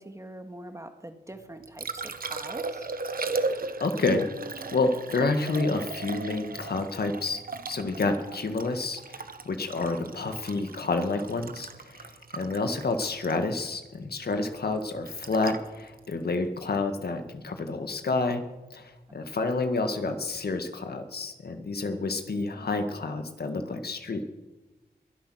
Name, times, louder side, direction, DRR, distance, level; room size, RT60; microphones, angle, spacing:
voice 1, 0.0-2.9 19.1-19.2 22.5-23.1, right 1 dB, 15° right, 7 dB, 2.1 m, -44 dB
Liquid, 1.4-17.5 20.3-20.4, right 3 dB, 55° right, 1.3 m, -37 dB
voice 2, 3.1-4.3 4.7-7.4 7.7-18.4 18.7-24.3, left 3 dB, 65° left, 7 dB, 1.9 m, -29 dB
22.5 x 8.4 x 6.4 m, 1.1 s
cardioid pair, 45°, 17 cm